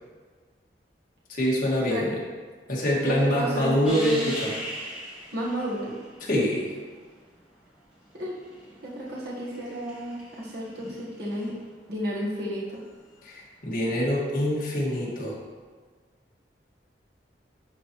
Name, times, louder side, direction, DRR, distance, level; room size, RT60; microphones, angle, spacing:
voice 1, 1.3-2.2 2.7-4.5 6.2-6.7 13.2-15.4, equal, 50° left, -5 dB, 1.8 m, -25 dB
voice 2, 3.0-3.8 5.3-6.0 8.2-8.4 8.8-11.5 11.9-12.8, equal, 65° right, -6 dB, 1.3 m, -32 dB
sound 1, 3.8-6.9 8.0-11.5 13.8-14.0, equal, 5° right, 2.0 m, -39 dB
11.5 x 4.1 x 3.0 m, 1.5 s
head